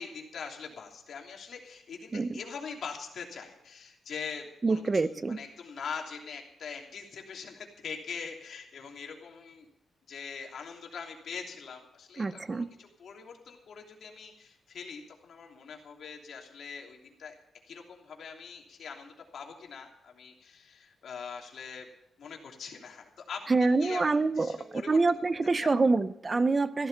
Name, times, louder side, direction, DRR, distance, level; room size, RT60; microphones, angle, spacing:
voice 1, 0.0-9.7 10.1-17.3 17.7-21.9 22.2-25.0 25.6-25.7, left 6 dB, 65° left, 1 dB, 3.1 m, -43 dB
voice 2, 4.6-5.4 12.2-12.7 23.5-26.9, right 3 dB, 30° right, 14 dB, 0.6 m, -26 dB
15.0 x 12.5 x 5.5 m, 0.82 s
cardioid pair, 120°, 0 cm